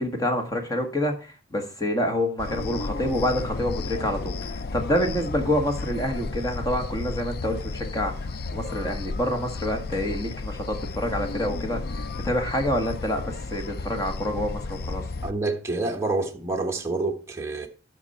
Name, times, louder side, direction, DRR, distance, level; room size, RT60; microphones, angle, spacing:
voice 1, 0.0-15.0, left 1 dB, 20° left, 1.6 m, -27 dB
sound 1, 2.4-15.3, left 3 dB, 55° left, 0.4 m, -33 dB
voice 2, 15.2-17.7, right 2 dB, 15° right, 1.3 m, -27 dB
12.0 x 6.5 x 4.3 m
head